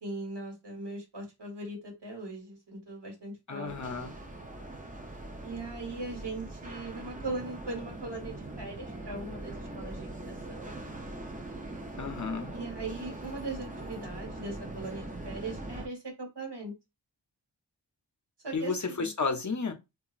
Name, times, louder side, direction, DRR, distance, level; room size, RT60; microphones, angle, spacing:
voice 1, 0.0-3.9 5.4-10.7 12.5-16.7 18.4-19.1, right 2 dB, 70° right, 1.2 m, -40 dB
voice 2, 3.5-4.2 12.0-12.5 18.5-19.7, left 4 dB, 45° left, 0.6 m, -32 dB
sound 1, 3.7-15.9, right 2 dB, 20° right, 0.6 m, -42 dB
2.9 x 2.3 x 2.4 m
wide cardioid pair, 45°, 43 cm